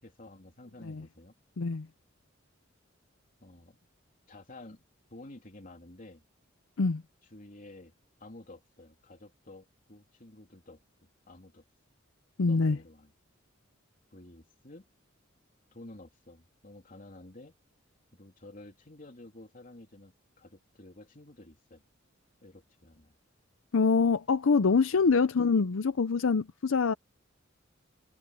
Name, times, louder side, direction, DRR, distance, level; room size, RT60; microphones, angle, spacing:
voice 1, 0.0-1.3 3.4-3.8 4.3-4.8 5.1-6.2 7.3-7.9 8.2-10.8 11.3-11.6 12.4-13.1 14.1-14.9 15.7-17.5 18.2-21.8 22.4-23.2 25.0-25.1, left 2 dB, 45° left, 3.3 m, -51 dB
voice 2, 12.4-12.8 23.7-26.9, left 4 dB, 80° left, 0.6 m, -25 dB
head